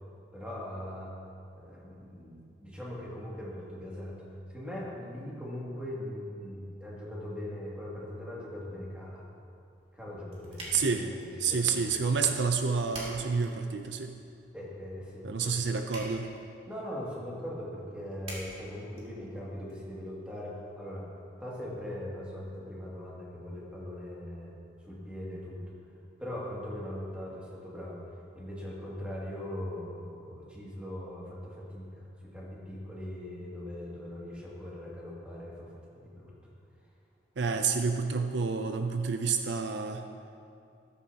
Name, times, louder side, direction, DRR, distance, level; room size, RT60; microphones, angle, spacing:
voice 1, 0.3-1.1 1.5-4.2 4.5-9.2 9.9-11.8 14.5-15.8 16.7-21.0 21.4-24.5 24.8-25.6 26.2-28.0 28.3-32.0 32.3-36.3 37.4-37.9, left 1 dB, 5° right, -6 dB, 2.3 m, -40 dB
sound 1, 9.8-19.7, right 1 dB, 35° right, 2.7 m, -49 dB
voice 2, 10.7-11.1 11.4-14.1 15.2-16.3 37.4-40.1, right 5 dB, 70° right, 6 dB, 0.5 m, -29 dB
14.5 x 12.5 x 2.9 m, 2.6 s
head